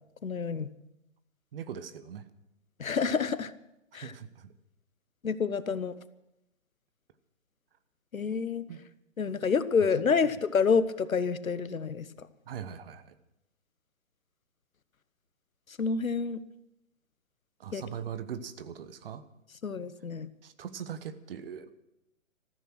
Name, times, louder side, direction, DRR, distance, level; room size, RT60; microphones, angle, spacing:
voice 1, 0.2-0.7 2.8-3.5 3.9-4.1 5.2-5.9 8.1-8.6 9.2-12.3 15.8-16.4 17.7-17.8 19.6-20.3, left 5 dB, 85° left, 14 dB, 1.1 m, -28 dB
voice 2, 1.5-2.2 4.0-4.5 8.7-8.8 12.5-13.1 17.6-19.2 20.4-21.7, right 8 dB, 45° right, 13 dB, 1.2 m, -40 dB
15.0 x 14.0 x 6.1 m, 0.86 s
figure-of-eight pair, 135°, 40 cm